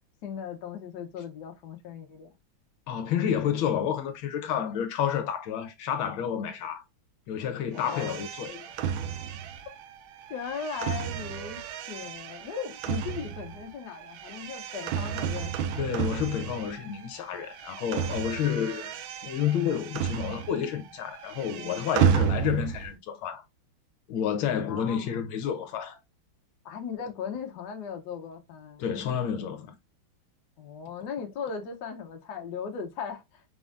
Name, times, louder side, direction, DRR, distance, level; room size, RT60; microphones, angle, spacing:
voice 1, 0.2-2.3 7.7-8.2 10.3-15.8 24.7-25.2 26.6-28.8 30.6-33.4, left 6 dB, 65° left, 1.3 m, -38 dB
voice 2, 2.9-6.8 7.3-8.6 15.8-23.4 24.1-26.0 28.8-29.8, left 8 dB, 80° left, 1.6 m, -30 dB
sound 1, 7.8-17.1 17.3-20.8 21.0-22.9, right 8 dB, 80° right, 1.4 m, -32 dB
5.2 x 3.8 x 2.4 m
omnidirectional pair, 2.2 m